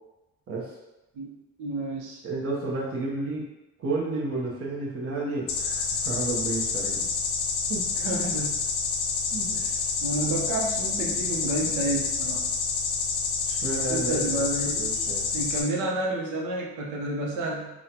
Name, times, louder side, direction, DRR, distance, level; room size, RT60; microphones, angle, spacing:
voice 1, 1.2-2.2 8.0-8.6 9.5-9.7 10.0-12.4 13.9-14.8 15.3-17.7, right 2 dB, 90° right, -2 dB, 0.7 m, -30 dB
voice 2, 2.2-3.4 3.8-7.1 7.7-7.8 9.3-9.6 13.5-14.4 14.7-15.3, right 3 dB, 50° right, -3 dB, 0.8 m, -31 dB
sound 1, 5.5-15.6, left 4 dB, 65° left, 0.6 m, -28 dB
3.7 x 2.2 x 2.8 m, 1.0 s
cardioid pair, 90°, 30 cm